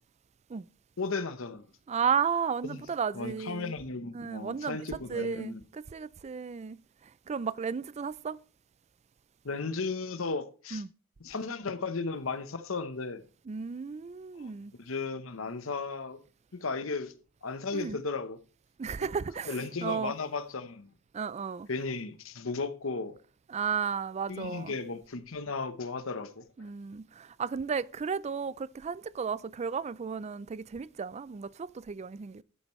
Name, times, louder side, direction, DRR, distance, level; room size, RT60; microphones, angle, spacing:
voice 1, 1.0-1.6 2.6-2.8 3.1-5.6 9.4-10.8 11.2-13.2 14.4-14.5 14.8-16.2 16.5-17.1 17.4-18.4 19.0-19.1 19.5-20.9 21.7-23.2 24.3-26.4, left 4 dB, 70° left, 0.9 m, -35 dB
voice 2, 1.9-3.7 4.1-4.8 5.1-8.4 10.7-10.9 13.5-14.7 17.7-18.0 18.8-20.1 21.1-21.7 23.5-24.7 26.6-32.4, right 6 dB, 35° right, 0.4 m, -34 dB
12.5 x 8.8 x 3.1 m
head